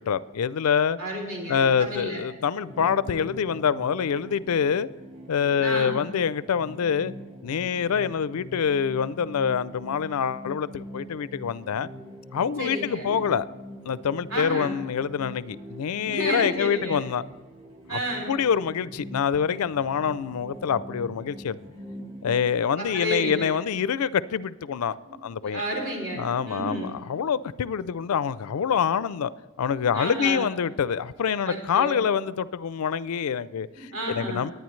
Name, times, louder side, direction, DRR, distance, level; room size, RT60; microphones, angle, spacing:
voice 1, 0.0-1.0 1.5-4.9 5.3-7.1 7.4-11.9 12.3-13.5 13.9-17.2 17.9-18.0 18.3-21.6 22.2-25.6 26.2-29.3 29.6-34.5, left 7 dB, 90° left, 0.4 m, -26 dB
voice 2, 1.0-2.2 5.5-6.0 12.6-13.2 14.3-14.8 16.1-17.0 17.9-18.3 21.9-22.3 22.8-23.5 25.1-25.2 25.4-27.0 29.8-30.5 31.5-32.0 33.8-34.5, right 1 dB, 65° right, 3.3 m, -32 dB
sound 1, 2.6-22.4, equal, 30° right, 1.5 m, -43 dB
19.5 x 9.2 x 3.2 m
head